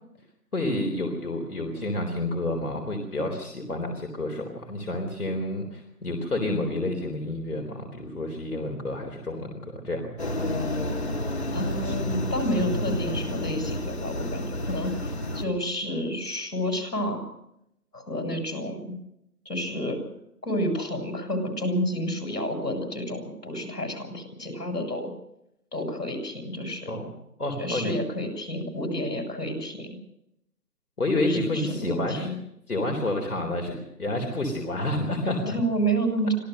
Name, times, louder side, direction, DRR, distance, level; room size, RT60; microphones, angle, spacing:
voice 1, 0.5-10.1 26.9-27.1 27.4-27.9 31.0-32.3 32.7-35.6, left 1 dB, 65° left, 2 dB, 4.0 m, -29 dB
sound 1, 10.2-15.4, left 1 dB, 45° left, 2.7 m, -30 dB
voice 2, 11.5-14.9 15.3-17.2 17.9-18.9 19.5-20.0 20.4-25.1 25.7-26.9 27.6-29.9 31.3-32.4 35.5-36.3, equal, 90° left, 5 dB, 7.5 m, -30 dB
25.5 x 15.5 x 6.7 m, 0.79 s
figure-of-eight pair, 175°, 47 cm